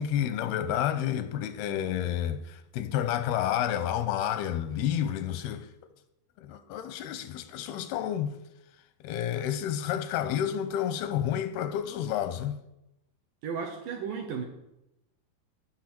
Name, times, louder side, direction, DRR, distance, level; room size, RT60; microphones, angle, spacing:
voice 1, 0.0-5.7 6.4-8.4 9.0-12.6, left 10 dB, 85° left, 2.6 m, -30 dB
voice 2, 13.4-14.4, right 6 dB, 70° right, 2.3 m, -34 dB
16.0 x 6.3 x 4.4 m
omnidirectional pair, 4.4 m